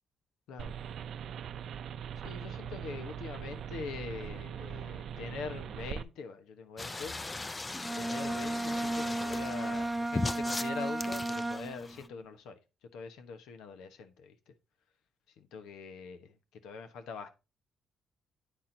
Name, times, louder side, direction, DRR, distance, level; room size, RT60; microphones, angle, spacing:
sound 1, 0.6-6.0, right 8 dB, 65° right, 0.5 m, -41 dB
voice 1, 2.2-7.1 7.9-14.5 15.4-17.3, left 5 dB, 85° left, 1.1 m, -43 dB
sound 2, 6.8-12.1, left 3 dB, 20° left, 0.4 m, -39 dB
Bowed string instrument, 7.7-12.0, right 2 dB, 10° right, 0.8 m, -34 dB
9.4 x 4.4 x 3.9 m
cardioid pair, 90°, 0 cm